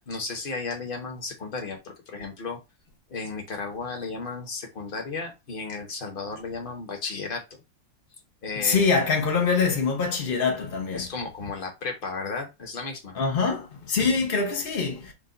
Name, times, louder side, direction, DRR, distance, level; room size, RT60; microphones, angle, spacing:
voice 1, 0.0-2.6 3.1-7.4 8.4-8.9 10.9-13.2, left 4 dB, 45° left, 0.7 m, -34 dB
voice 2, 8.6-11.1 13.2-15.1, left 5 dB, 80° left, 0.4 m, -24 dB
5.2 x 2.2 x 3.8 m
omnidirectional pair, 2.1 m